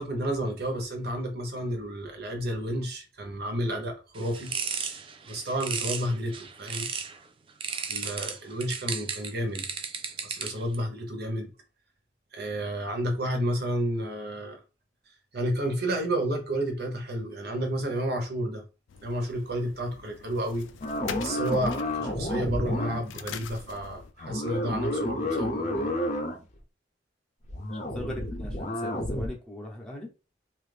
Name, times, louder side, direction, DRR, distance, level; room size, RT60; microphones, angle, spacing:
voice 1, 0.0-4.5 5.2-6.9 7.9-9.6 10.2-11.5 12.3-14.6 15.3-18.6 19.0-20.7 21.2-25.9, right 1 dB, 60° right, 0.9 m, -31 dB
sound 1, 4.1-7.2 7.6-10.8, right 6 dB, 30° right, 0.4 m, -34 dB
sound 2, 18.9-24.1, left 7 dB, 85° left, 0.4 m, -44 dB
sound 3, 20.8-23.2 24.2-26.4 27.5-29.3, left 1 dB, 40° left, 0.6 m, -30 dB
voice 2, 27.9-30.1, left 1 dB, 5° left, 0.7 m, -39 dB
2.8 x 2.4 x 3.3 m
head